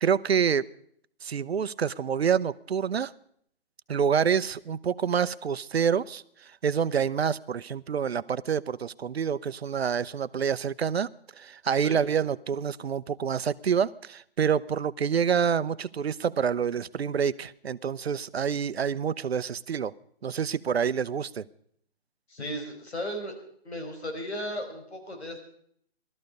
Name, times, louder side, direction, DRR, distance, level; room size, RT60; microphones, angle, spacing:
voice 1, 0.0-0.6 1.2-3.1 3.9-11.1 11.4-19.9 20.2-21.5, right 7 dB, 70° right, 16 dB, 0.7 m, -27 dB
voice 2, 22.3-23.3 23.6-25.4, equal, 85° left, 4 dB, 5.3 m, -35 dB
19.0 x 13.0 x 5.3 m, 0.66 s
hypercardioid pair, 155°, 32 cm